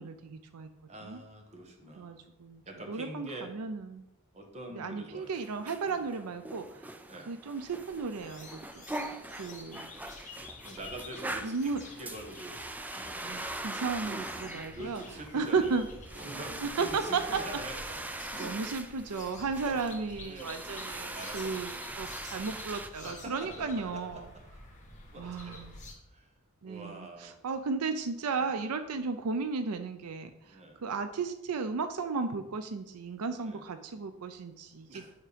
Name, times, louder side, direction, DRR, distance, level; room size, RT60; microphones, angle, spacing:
voice 1, 0.0-0.7 1.0-1.2 2.0-2.6 2.9-4.0 4.8-7.0 7.3-8.8 9.3-9.8 10.2-10.3 11.4-11.8 13.2-15.0 15.3-15.9 16.6-17.2 18.4-24.3 25.2-25.8 26.6-35.0, right 4 dB, 85° right, 9 dB, 0.5 m, -34 dB
voice 2, 0.9-2.2 2.7-3.5 4.3-5.3 5.9-6.0 7.1-7.3 10.6-11.7 12.0-12.6 12.9-13.4 14.7-15.8 16.1-18.6 19.2-19.3 19.6-19.8 20.2-20.6 21.1-21.6 23.0-24.4 25.1-25.7 26.1-26.3 26.6-27.5 28.3-28.5 29.0-29.1 30.5-30.8 33.4-33.6 34.9-35.1, right 2 dB, 30° right, 2 dB, 1.3 m, -45 dB
sound 1, 5.2-22.9, right 1 dB, 5° right, 0.3 m, -42 dB
sound 2, 7.5-25.9, left 2 dB, 35° left, 1.5 m, -50 dB
sound 3, 10.3-17.2, left 1 dB, 80° left, 1.8 m, -57 dB
9.3 x 3.6 x 5.1 m, 0.87 s
head